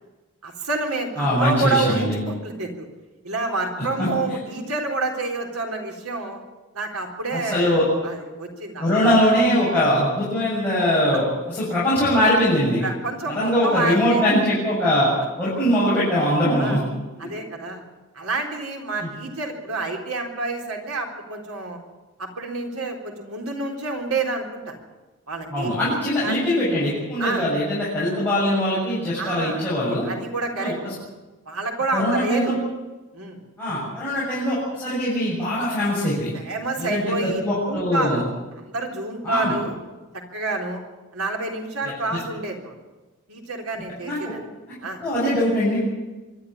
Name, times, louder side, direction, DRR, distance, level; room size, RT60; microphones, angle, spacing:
voice 1, 0.4-2.9 3.2-6.4 6.7-9.1 10.9-11.0 12.8-14.2 16.6-16.8 17.2-17.8 18.1-21.8 22.2-24.8 25.3-25.7 26.2-26.4 27.2-27.5 29.2-29.7 30.0-30.7 31.5-32.6 33.1-33.4 36.3-38.2 38.7-39.7 40.3-40.8 41.1-42.7 43.3-44.4 44.8-45.0, right 3 dB, 80° right, 2 dB, 3.9 m, -28 dB
voice 2, 1.2-2.1 4.0-4.1 7.3-7.8 8.8-12.8 13.3-15.1 15.4-16.8 17.2-17.3 19.0-19.1 25.5-30.1 30.6-30.9 31.9-32.5 33.6-36.3 36.8-38.2 39.2-39.5 41.9-42.2 44.0-44.3 45.0-45.8, equal, 10° left, -10 dB, 7.2 m, -22 dB
24.5 x 12.5 x 9.9 m, 1.2 s
head